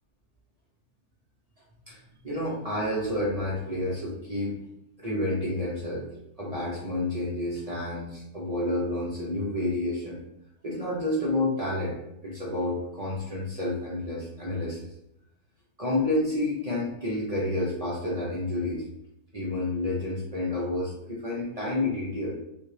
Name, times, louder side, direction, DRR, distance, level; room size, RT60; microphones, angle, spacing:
voice 1, 2.2-4.6 5.0-6.0 6.4-10.2 10.6-12.0 12.2-14.9 15.8-18.8 19.3-22.3, left 1 dB, 40° right, -6 dB, 0.6 m, -29 dB
3.3 x 2.8 x 3.2 m, 0.82 s
omnidirectional pair, 1.7 m